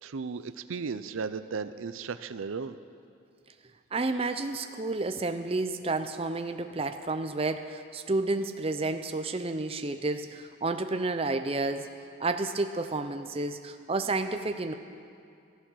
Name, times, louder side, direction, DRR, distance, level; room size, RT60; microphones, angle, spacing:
voice 1, 0.0-2.7, right 5 dB, 70° right, 12 dB, 0.5 m, -35 dB
voice 2, 3.9-11.9 12.2-14.7, right 3 dB, 25° right, 7 dB, 0.6 m, -30 dB
15.0 x 14.0 x 6.3 m, 2.4 s
head